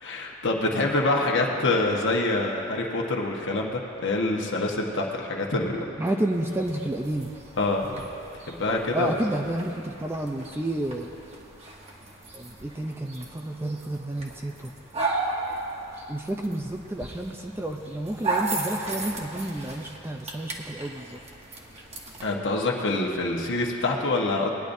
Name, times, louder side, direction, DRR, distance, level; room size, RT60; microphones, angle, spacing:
voice 1, 0.0-5.8 7.6-7.9 8.5-9.2 22.2-24.5, left 2 dB, 60° left, -1 dB, 1.3 m, -26 dB
voice 2, 6.0-7.3 8.9-11.1 12.3-14.7 16.1-21.2, right 1 dB, 10° right, 3 dB, 0.5 m, -30 dB
sound 1, 6.3-22.2, right 3 dB, 30° right, 1.2 m, -36 dB
19.5 x 10.0 x 2.7 m, 2.8 s
head